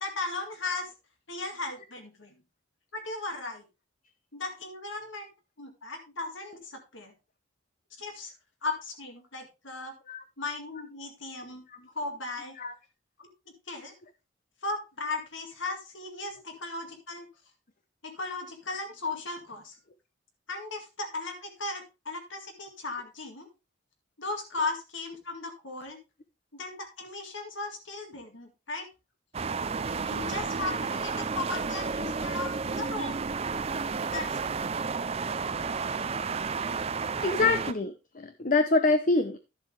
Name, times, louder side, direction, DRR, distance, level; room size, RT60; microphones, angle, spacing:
voice 1, 0.0-0.9 1.3-2.3 2.9-3.6 4.3-5.3 5.6-7.1 8.0-8.3 8.6-9.9 10.4-11.6 11.9-12.6 13.2-13.3 13.7-13.9 14.6-17.3 18.0-19.8 20.5-23.5 24.2-26.0 26.5-28.9 30.0-33.2 34.1-34.5, left 3 dB, 65° left, 5 dB, 2.1 m, -36 dB
sound 1, 29.3-37.7, right 5 dB, 30° right, 0.4 m, -32 dB
voice 2, 37.2-39.4, left 3 dB, 40° left, 9 dB, 0.7 m, -25 dB
11.5 x 7.7 x 3.3 m, 0.27 s
head